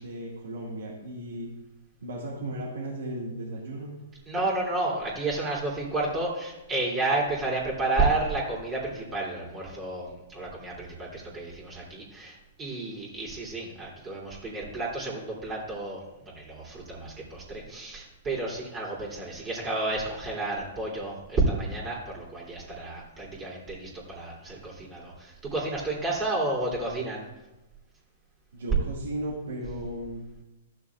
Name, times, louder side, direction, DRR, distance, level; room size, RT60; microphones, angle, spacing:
voice 1, 0.0-1.5 2.0-4.0 28.5-30.2, right 1 dB, 75° right, -5 dB, 2.0 m, -35 dB
voice 2, 4.3-27.2, right 2 dB, 20° right, -5 dB, 3.2 m, -31 dB
14.5 x 6.6 x 2.4 m, 1.0 s
hypercardioid pair, 115°, 0 cm